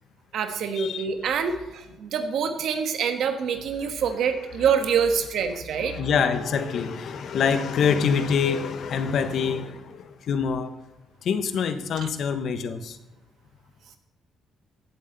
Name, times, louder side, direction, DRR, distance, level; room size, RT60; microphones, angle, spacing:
voice 1, 0.3-6.0 11.9-12.1, right 6 dB, 75° right, 7 dB, 1.3 m, -26 dB
voice 2, 5.9-10.7 11.2-13.0, left 6 dB, 65° left, 9 dB, 1.0 m, -25 dB
14.5 x 8.6 x 4.0 m, 1.0 s
cardioid pair, 90°, 0 cm